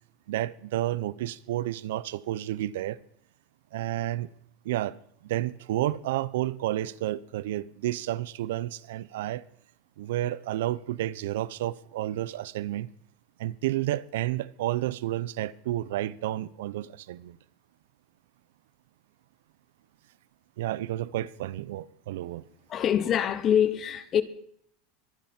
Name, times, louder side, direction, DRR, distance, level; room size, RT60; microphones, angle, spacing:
voice 1, 0.3-3.0 3.7-4.3 4.6-5.0 5.2-9.4 10.0-12.9 13.4-17.4 20.6-22.4, right 14 dB, 90° right, 0.6 m, -31 dB
voice 2, 22.7-24.2, left 9 dB, 30° left, 0.9 m, -24 dB
23.5 x 9.0 x 4.4 m
supercardioid pair, 160°, 0 cm